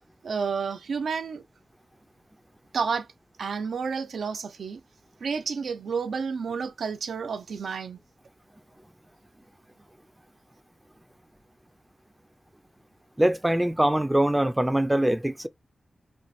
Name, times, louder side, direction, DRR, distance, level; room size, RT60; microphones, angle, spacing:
voice 1, 0.2-1.4 2.7-3.1 3.4-4.8 5.2-8.0, right 5 dB, 90° right, 0.5 m, -30 dB
voice 2, 13.2-15.5, right 1 dB, 10° right, 0.3 m, -23 dB
4.4 x 2.4 x 2.6 m
wide cardioid pair, 75°, 0 cm